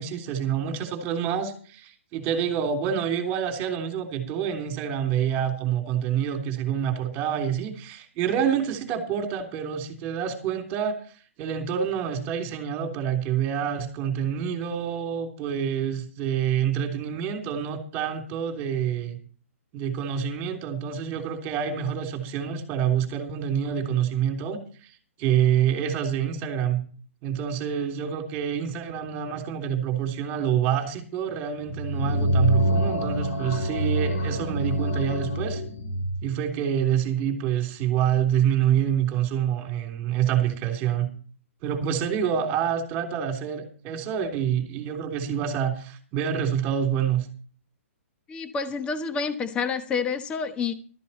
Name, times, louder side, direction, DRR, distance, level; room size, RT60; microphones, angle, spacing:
voice 1, 0.0-11.0 11.4-19.2 19.7-24.9 25.2-26.8 27.2-35.6 36.2-41.1 41.6-47.3, right 8 dB, 25° right, 4 dB, 3.3 m, -27 dB
sound 1, 31.6-36.2, right 1 dB, 75° left, 3.8 m, -25 dB
voice 2, 48.3-50.7, left 5 dB, 15° left, 9 dB, 1.1 m, -28 dB
13.5 x 13.0 x 4.3 m, 0.42 s
hypercardioid pair, 150°, 8 cm